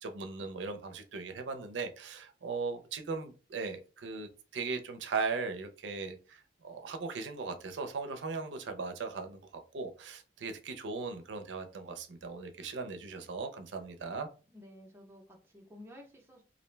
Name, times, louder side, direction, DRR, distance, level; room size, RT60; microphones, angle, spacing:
voice 1, 0.0-14.3, right 4 dB, 85° right, 7 dB, 0.4 m, -38 dB
voice 2, 14.5-16.4, left 1 dB, 15° right, 0 dB, 0.5 m, -53 dB
2.5 x 2.1 x 3.1 m, 0.34 s
head